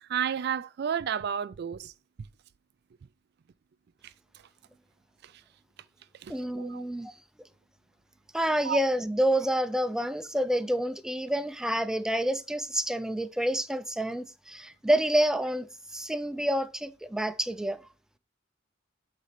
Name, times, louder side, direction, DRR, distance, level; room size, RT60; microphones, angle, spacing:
voice 1, 0.1-1.9 6.6-6.8 8.7-8.8, right 8 dB, 60° right, 0.4 m, -30 dB
voice 2, 6.3-7.1 8.3-15.7 15.9-17.8, equal, 5° right, 0.5 m, -28 dB
8.3 x 4.1 x 5.7 m
head